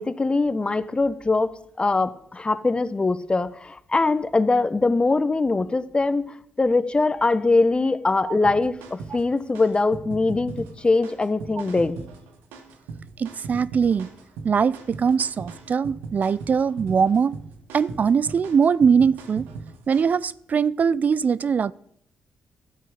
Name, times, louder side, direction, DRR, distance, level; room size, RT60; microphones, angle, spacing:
voice 1, 0.0-12.0, left 3 dB, 30° left, 1.1 m, -22 dB
sound 1, 8.4-20.2, right 4 dB, 85° right, 1.5 m, -39 dB
voice 2, 13.2-14.1 14.4-17.4 17.7-19.5 19.9-21.7, right 6 dB, 50° right, 0.4 m, -21 dB
13.0 x 9.2 x 6.6 m
hypercardioid pair, 45°, 3 cm